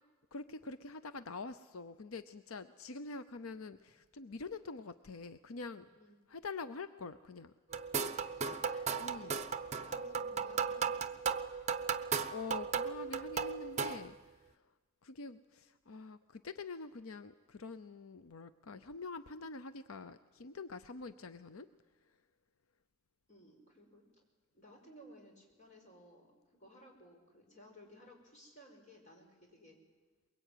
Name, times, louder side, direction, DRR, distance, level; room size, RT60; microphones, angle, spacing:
voice 1, 0.3-5.9 6.3-7.5 9.0-9.4 12.3-14.2 15.0-21.7, left 3 dB, 85° left, 12 dB, 0.7 m, -45 dB
sound 1, 7.7-14.1, right 6 dB, 30° right, 0.9 m, -36 dB
voice 2, 8.7-9.5 9.8-11.3 23.3-24.0 24.5-26.3 26.6-29.8, equal, 35° left, 1 dB, 5.3 m, -58 dB
23.0 x 22.0 x 9.2 m, 1.3 s
head